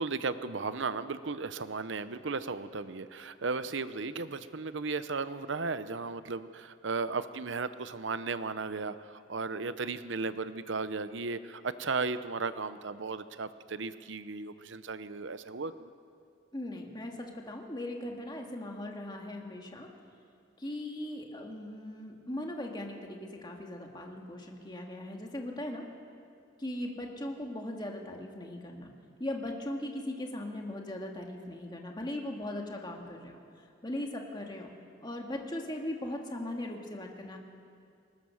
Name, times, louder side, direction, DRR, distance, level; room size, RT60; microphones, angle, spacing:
voice 1, 0.0-15.9, right 4 dB, 75° right, 13 dB, 0.8 m, -35 dB
voice 2, 16.5-19.9 20.6-25.9 26.6-28.9 29.2-33.4 33.8-34.7 35.0-37.4, left 1 dB, 20° left, 1 dB, 2.0 m, -39 dB
21.0 x 19.5 x 6.5 m, 2.3 s
head